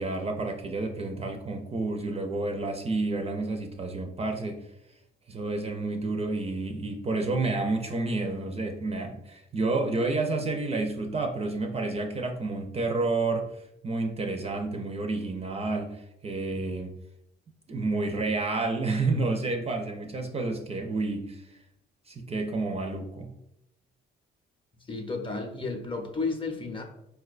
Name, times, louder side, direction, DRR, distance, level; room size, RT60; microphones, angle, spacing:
voice 1, 0.0-4.6 5.3-13.5 13.8-16.9 17.7-21.4 22.1-23.3, right 3 dB, 30° right, 4 dB, 0.4 m, -30 dB
voice 2, 24.9-26.8, left 3 dB, 25° left, 3 dB, 0.6 m, -32 dB
4.4 x 2.2 x 2.4 m, 0.81 s
cardioid pair, 90°, 20 cm